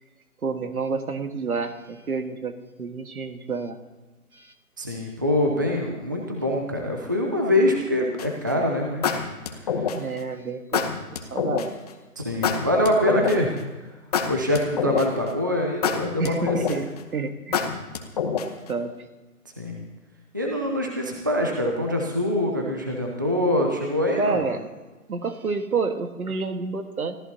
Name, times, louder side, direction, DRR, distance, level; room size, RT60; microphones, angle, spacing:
voice 1, 0.4-3.8 4.3-4.5 9.9-10.9 11.3-11.7 16.2-17.7 18.7-19.1 24.1-24.7 25.1-27.2, right 4 dB, 70° right, 8 dB, 1.7 m, -29 dB
voice 2, 4.8-9.2 9.6-9.8 12.2-13.5 14.3-16.8 19.6-19.8 20.3-24.4, left 1 dB, 15° right, 1 dB, 0.5 m, -24 dB
sound 1, 8.2-8.5 9.0-10.2 10.7-11.7 12.4-13.6 14.1-15.3 15.8-17.0 17.5-18.7, left 6 dB, 25° left, 0.9 m, -26 dB
25.0 x 14.0 x 2.9 m, 1.2 s
figure-of-eight pair, 150°, 46 cm